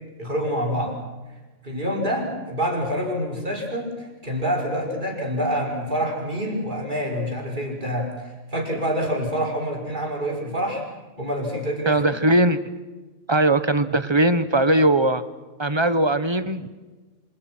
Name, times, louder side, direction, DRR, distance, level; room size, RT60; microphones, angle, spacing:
voice 1, 0.2-1.0 1.6-10.8 11.2-12.0, equal, 40° right, -1 dB, 5.9 m, -26 dB
voice 2, 11.9-12.6 13.3-15.2 15.6-16.7, right 1 dB, 25° right, 12 dB, 1.1 m, -20 dB
27.5 x 26.5 x 6.2 m, 1.3 s
omnidirectional pair, 1.3 m